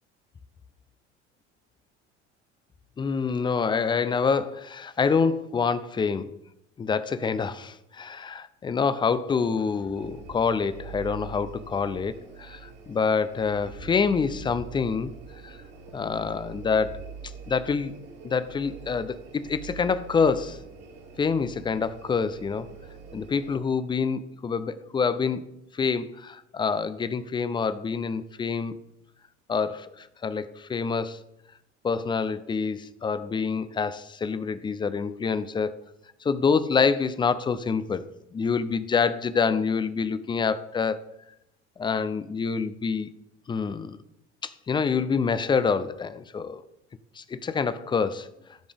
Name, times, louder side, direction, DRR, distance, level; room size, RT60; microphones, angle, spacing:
voice 1, 3.0-6.3 6.8-15.1 15.4-15.6 15.9-17.0 17.5-17.9 18.2-20.6 21.2-22.7 23.1-25.4 25.7-28.7 29.5-31.2 31.8-35.8 36.2-41.0 41.8-43.1 43.5-44.0 44.4-46.6 47.2-48.3, left 5 dB, 15° left, 0.4 m, -26 dB
sound 1, 10.0-23.6, right 6 dB, 45° right, 2.1 m, -44 dB
13.0 x 5.0 x 3.6 m
figure-of-eight pair, 60°, 35 cm